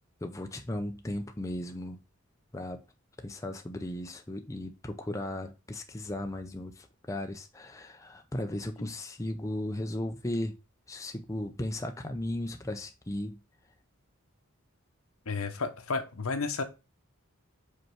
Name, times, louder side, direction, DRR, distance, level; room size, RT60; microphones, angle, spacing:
voice 1, 0.2-2.0 2.5-2.8 3.2-10.5 10.9-13.4, left 1 dB, 15° left, 0.5 m, -36 dB
voice 2, 15.3-16.6, left 4 dB, 80° left, 1.0 m, -32 dB
5.3 x 4.6 x 4.5 m
head